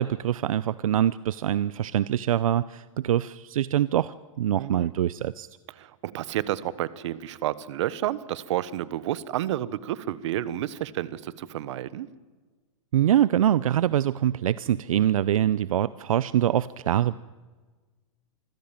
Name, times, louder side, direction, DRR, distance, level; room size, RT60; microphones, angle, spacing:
voice 1, 0.0-5.5 12.9-17.2, right 11 dB, 80° right, 18 dB, 0.6 m, -24 dB
voice 2, 4.6-4.9 5.8-12.1, right 13 dB, 60° right, 18 dB, 1.2 m, -30 dB
26.0 x 15.5 x 7.4 m, 1.3 s
hypercardioid pair, 145°, 18 cm